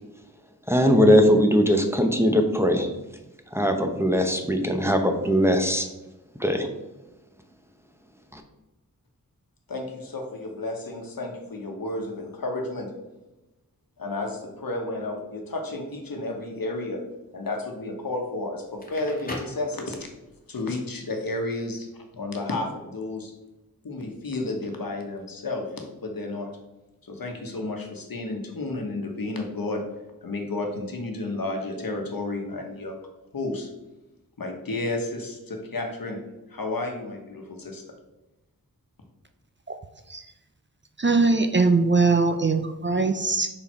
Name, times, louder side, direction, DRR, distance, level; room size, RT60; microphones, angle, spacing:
voice 1, 0.7-2.9 3.5-5.9 6.4-6.7 8.3-8.4, equal, 5° right, 5 dB, 0.9 m, -20 dB
voice 2, 9.7-12.9 14.0-17.0 17.3-20.1 20.5-21.9 22.1-23.3 23.8-26.5 27.0-29.8 30.2-32.9 33.3-33.7 34.4-36.2 36.5-37.8, left 2 dB, 75° left, 3 dB, 1.2 m, -32 dB
Crackle, 18.6-20.3, left 1 dB, 25° left, 1.5 m, -38 dB
voice 3, 41.0-43.5, right 3 dB, 35° right, 7 dB, 0.5 m, -21 dB
5.5 x 4.4 x 4.4 m, 1.0 s
wide cardioid pair, 50°, 35 cm